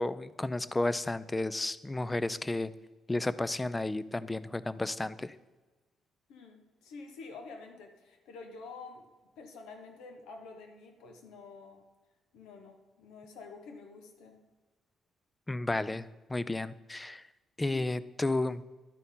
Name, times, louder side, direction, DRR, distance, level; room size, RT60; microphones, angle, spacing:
voice 1, 0.0-2.7 3.1-5.3 15.5-17.2 17.6-18.6, left 2 dB, 15° left, 16 dB, 0.4 m, -32 dB
voice 2, 6.3-9.0 9.4-11.8 12.3-14.4 17.7-17.8, left 4 dB, 90° left, 5 dB, 1.3 m, -48 dB
11.5 x 4.5 x 5.4 m, 1.2 s
cardioid pair, 90°, 0 cm